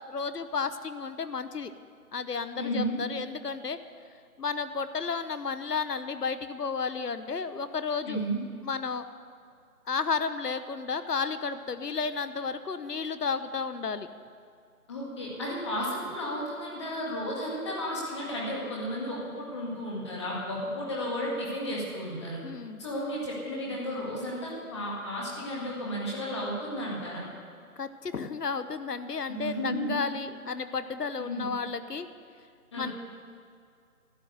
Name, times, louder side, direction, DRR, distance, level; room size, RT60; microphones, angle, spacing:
voice 1, 0.0-1.7 2.1-3.8 4.4-8.2 8.6-9.1 9.9-14.1 15.4-15.5 22.4-22.8 27.8-32.1 32.7-32.9, left 5 dB, 80° left, 12 dB, 1.0 m, -32 dB
voice 2, 2.5-3.0 8.1-8.4 14.9-22.4 22.8-27.2 29.3-30.0 31.2-31.5 32.7-32.9, equal, 20° left, -4 dB, 1.9 m, -33 dB
12.5 x 8.9 x 7.8 m, 2.3 s
figure-of-eight pair, 160°, 47 cm